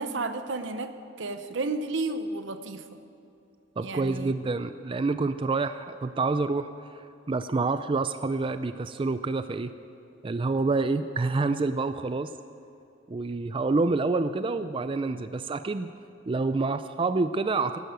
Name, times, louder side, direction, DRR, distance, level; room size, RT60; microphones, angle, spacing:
voice 1, 0.0-2.8 3.8-4.5, right 3 dB, 80° right, 10 dB, 0.9 m, -32 dB
voice 2, 3.8-6.7 7.3-9.7 10.2-12.3 13.1-15.9 16.3-17.8, right 3 dB, 30° right, 11 dB, 0.4 m, -27 dB
12.0 x 11.5 x 7.8 m, 2.7 s
head